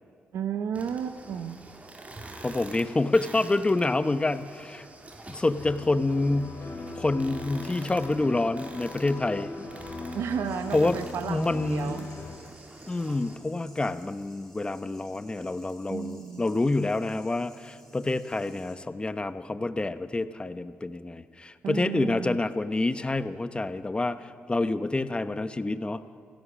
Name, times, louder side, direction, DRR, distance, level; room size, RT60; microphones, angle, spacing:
voice 1, 0.3-1.6 10.1-12.1 15.9-16.4 21.6-22.4, right 7 dB, 80° right, 8 dB, 0.9 m, -32 dB
sound 1, 0.7-13.4, right 2 dB, 30° right, 2.8 m, -47 dB
voice 2, 2.4-4.9 5.3-6.5 6.9-9.5 10.7-11.0 11.2-12.0 12.9-26.0, left 2 dB, 20° left, 12 dB, 0.9 m, -27 dB
sound 2, 5.6-12.4, left 3 dB, 55° left, 3.7 m, -40 dB
sound 3, 10.4-18.7, left 1 dB, 5° left, 6.5 m, -57 dB
27.5 x 17.0 x 6.2 m, 2.4 s
cardioid pair, 80°, 5 cm